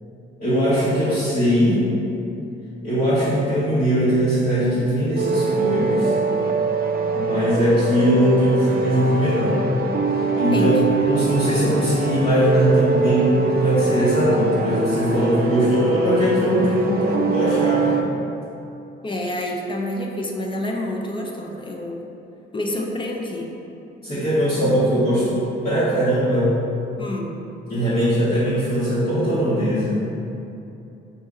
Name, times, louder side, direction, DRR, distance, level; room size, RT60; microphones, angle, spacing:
voice 1, 0.4-1.9 2.8-6.1 7.1-9.7 10.4-10.7 11.1-18.0 24.0-26.6 27.7-30.0, equal, 50° left, -14 dB, 1.3 m, -20 dB
sound 1, 5.2-18.0, right 3 dB, 50° right, 0.4 m, -23 dB
voice 2, 10.5-10.8 19.0-22.0 22.5-23.5 27.0-27.3, left 1 dB, 25° left, 0 dB, 0.5 m, -27 dB
4.0 x 2.7 x 3.6 m, 2.8 s
cardioid pair, 90°, 20 cm